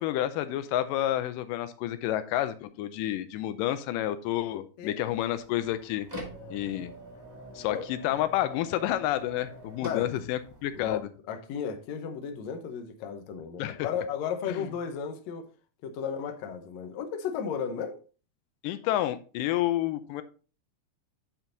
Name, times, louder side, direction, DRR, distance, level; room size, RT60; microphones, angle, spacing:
voice 1, 0.0-6.1 6.5-6.9 7.6-11.1 13.6-13.9 14.5-14.6 18.6-20.2, left 13 dB, 90° left, 2.2 m, -29 dB
sound 1, 5.0-11.0, equal, 15° right, 1.0 m, -45 dB
voice 2, 9.8-10.1 10.8-15.5 15.8-18.0, left 7 dB, 70° left, 1.9 m, -34 dB
8.6 x 4.5 x 3.8 m
omnidirectional pair, 3.8 m